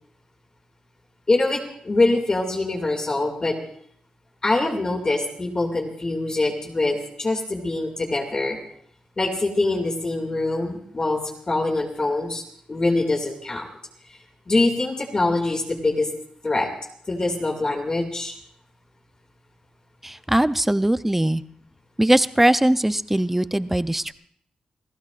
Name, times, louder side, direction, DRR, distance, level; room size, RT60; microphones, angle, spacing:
voice 1, 1.3-3.6 4.4-8.6 9.2-11.2 11.5-12.4 12.7-13.7 14.5-16.1 16.4-16.7 17.1-18.3, left 2 dB, 30° left, 1 dB, 2.4 m, -24 dB
voice 2, 20.0-21.4 22.0-24.1, right 1 dB, 10° right, 13 dB, 0.6 m, -20 dB
29.5 x 15.0 x 2.5 m, 0.64 s
cardioid pair, 95°, 2 cm